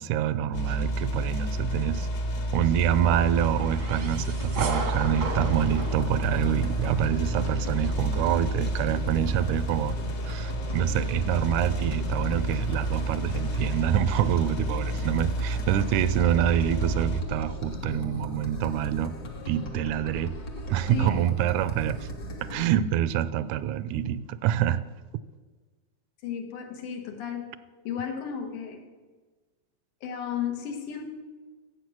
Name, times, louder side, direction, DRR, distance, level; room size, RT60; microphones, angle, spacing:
voice 1, 0.0-2.1 2.5-10.0 10.2-19.2 19.5-20.4 20.7-22.1 22.4-24.8, right 11 dB, 85° right, 1.9 m, -26 dB
sound 1, 0.5-17.2, right 1 dB, 50° left, 1.2 m, -30 dB
sound 2, 2.9-7.0, right 3 dB, 55° right, 0.8 m, -35 dB
sound 3, 4.2-22.7, equal, 70° left, 0.8 m, -38 dB
voice 2, 20.9-21.2 22.5-22.6 26.2-27.4 27.8-28.8 30.0-31.1, left 8 dB, 90° left, 2.9 m, -34 dB
14.5 x 7.8 x 6.1 m
omnidirectional pair, 3.4 m